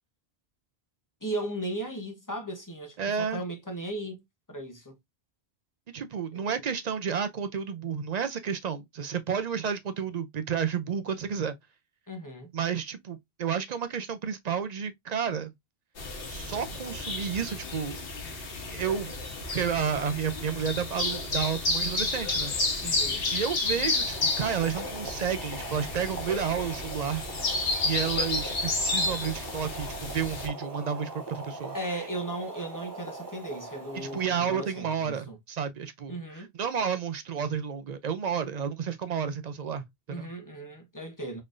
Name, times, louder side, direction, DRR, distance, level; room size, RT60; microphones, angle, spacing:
voice 1, 1.2-4.2 4.5-5.0 6.3-6.5 12.1-12.5 22.8-23.3 31.7-35.4 36.1-36.5 40.1-41.4, right 1 dB, 20° left, 0.8 m, -36 dB
voice 2, 3.0-3.4 5.9-11.6 12.5-15.5 16.3-18.0 18.7-19.1 19.5-22.5 23.3-27.3 27.8-31.8 33.9-40.3, right 7 dB, 55° right, 0.5 m, -31 dB
sound 1, 16.0-30.5, left 3 dB, 65° left, 1.2 m, -31 dB
Boiling, 23.8-34.8, right 3 dB, 20° right, 0.8 m, -42 dB
4.1 x 3.2 x 2.5 m
omnidirectional pair, 1.1 m